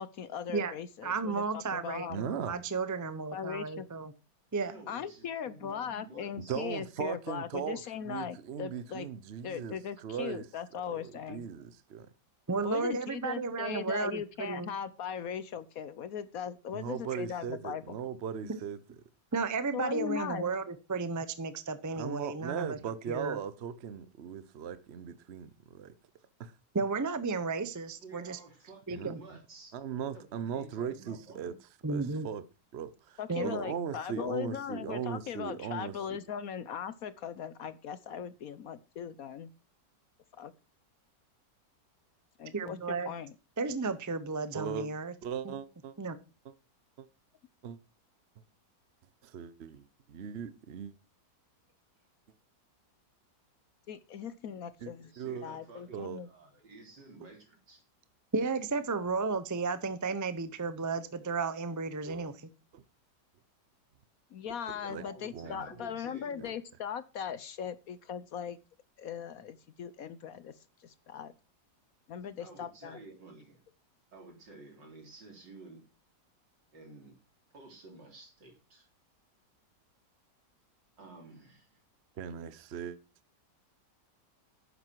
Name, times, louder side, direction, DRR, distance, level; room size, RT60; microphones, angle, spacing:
voice 1, 0.0-2.2 3.3-3.9 4.9-9.1 9.4-11.4 12.6-17.8 18.4-18.5 19.7-20.5 33.2-39.5 40.4-40.5 42.4-43.3 53.9-55.1 55.4-56.3 64.3-68.6 69.0-70.5 70.8-71.3 72.1-73.0, left 8 dB, 65° left, 1.0 m, -39 dB
voice 2, 1.0-4.1 4.5-4.8 12.5-14.7 18.5-18.6 19.3-22.8 23.1-23.4 26.7-28.4 28.9-29.2 31.8-32.3 33.3-33.5 42.5-43.1 43.6-45.1 45.4-45.6 46.0-46.2 58.3-62.5, right 4 dB, 20° right, 0.5 m, -33 dB
voice 3, 2.1-2.6 6.4-10.4 10.9-12.1 16.7-18.8 22.0-25.9 26.4-26.5 28.9-29.4 29.7-31.5 31.9-32.4 32.7-36.2 44.5-44.9 45.2-45.9 46.4-46.5 47.0-47.1 47.6-47.8 49.2-50.9 54.8-55.5 55.9-56.2 62.1-62.3 62.7-62.8 64.9-65.0 65.3-65.7 66.4-66.5 82.2-83.0, right 7 dB, 50° right, 0.8 m, -38 dB
voice 4, 4.7-6.7 28.0-31.6 55.0-57.9 64.7-66.6 72.4-73.6 74.1-75.8 76.7-77.2 77.5-78.9 81.0-81.8, right 3 dB, 85° right, 4.5 m, -52 dB
11.5 x 9.8 x 4.6 m
omnidirectional pair, 1.9 m